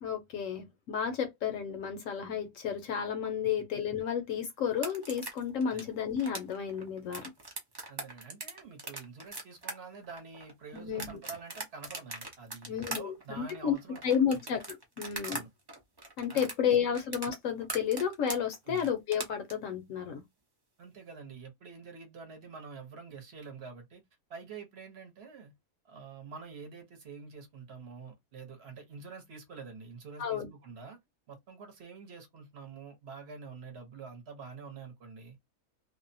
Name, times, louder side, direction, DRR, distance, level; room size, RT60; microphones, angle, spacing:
voice 1, 0.0-7.3 10.7-11.2 12.7-13.7 14.0-15.4 16.2-20.2 30.2-30.5, left 8 dB, 70° left, 0.9 m, -32 dB
sound 1, 4.7-15.4 15.7-19.5, right 2 dB, 30° right, 0.4 m, -41 dB
voice 2, 7.9-14.4 15.3-15.5 16.3-16.5 16.9-17.0 18.6-18.9 20.8-24.0 24.3-25.5 25.8-31.0 31.3-35.4, right 5 dB, 55° right, 1.0 m, -47 dB
2.6 x 2.1 x 2.6 m
omnidirectional pair, 1.5 m